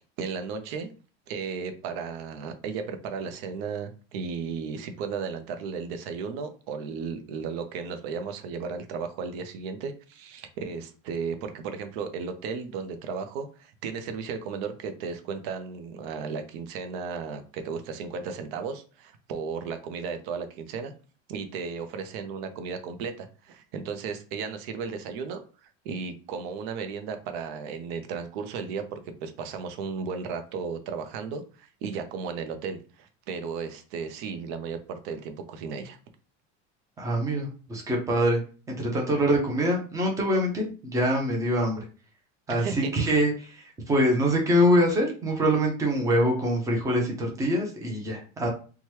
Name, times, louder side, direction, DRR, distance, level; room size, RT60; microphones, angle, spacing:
voice 1, 0.2-0.9 1.3-20.9 21.3-36.0 42.5-42.9, right 5 dB, 70° right, 8 dB, 0.6 m, -35 dB
voice 2, 37.0-38.4 38.7-41.9 42.5-48.5, equal, 10° right, 0 dB, 0.5 m, -24 dB
2.9 x 2.2 x 3.1 m, 0.38 s
cardioid pair, 175°, 31 cm